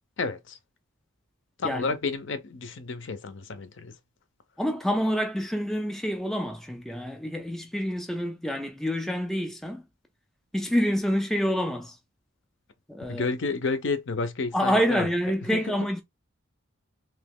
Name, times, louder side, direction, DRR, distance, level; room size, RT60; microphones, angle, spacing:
voice 1, 0.2-0.6 1.6-3.9 13.1-15.1 15.5-15.6, left 4 dB, 55° left, 0.6 m, -30 dB
voice 2, 4.6-9.8 10.5-12.0 12.9-13.3 14.5-16.0, equal, ahead, 0.3 m, -27 dB
3.0 x 2.9 x 3.5 m
head